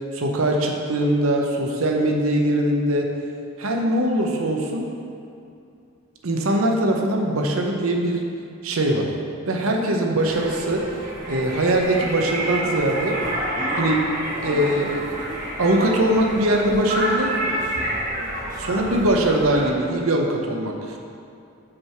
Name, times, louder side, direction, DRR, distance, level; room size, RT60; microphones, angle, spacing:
voice 1, 0.1-3.1 3.6-4.9 6.2-8.3 8.6-9.1 9.5-10.8 11.3-13.2 13.8-14.0 14.4-15.2 15.6-17.3 18.6-21.0, right 1 dB, 75° right, 2 dB, 0.8 m, -21 dB
sound 1, 10.2-19.7, right 1 dB, 40° right, 1.3 m, -28 dB
6.1 x 4.7 x 5.8 m, 2.6 s
head